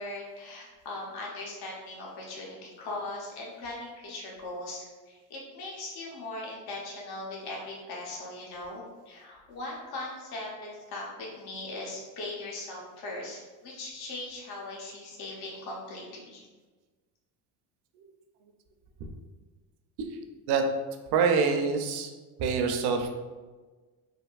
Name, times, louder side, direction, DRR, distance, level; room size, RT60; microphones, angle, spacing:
voice 1, 0.0-16.4, left 2 dB, 60° left, -3 dB, 1.0 m, -39 dB
voice 2, 21.1-22.1 22.4-23.1, right 5 dB, 60° right, 5 dB, 0.6 m, -25 dB
3.4 x 2.6 x 2.4 m, 1.3 s
supercardioid pair, 85°, 43 cm